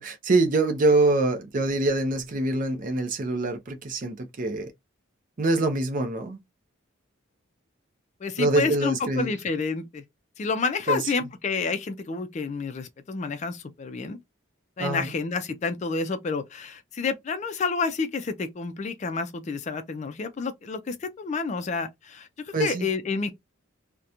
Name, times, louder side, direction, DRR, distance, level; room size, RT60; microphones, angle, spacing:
voice 1, 0.0-4.7 5.4-6.4 8.4-9.3 10.9-11.0 14.8-15.1 22.5-22.9, right 2 dB, 40° right, 0.5 m, -24 dB
voice 2, 8.2-10.0 10.4-14.2 14.8-23.3, left 4 dB, 35° left, 0.3 m, -29 dB
2.8 x 2.1 x 2.4 m
head